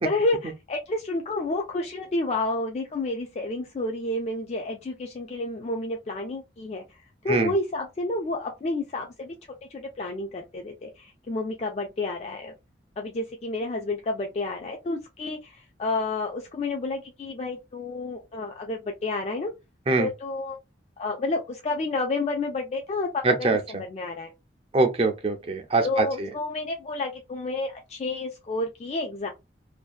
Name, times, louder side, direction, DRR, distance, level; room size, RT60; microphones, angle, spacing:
voice 1, 0.0-6.8 7.2-9.4 9.7-12.5 13.0-19.5 20.0-20.6 21.0-24.3 25.8-29.3, left 2 dB, 35° left, 0.3 m, -30 dB
voice 2, 23.2-23.8 24.7-26.3, right 3 dB, 30° right, 0.4 m, -23 dB
2.5 x 2.2 x 2.3 m
head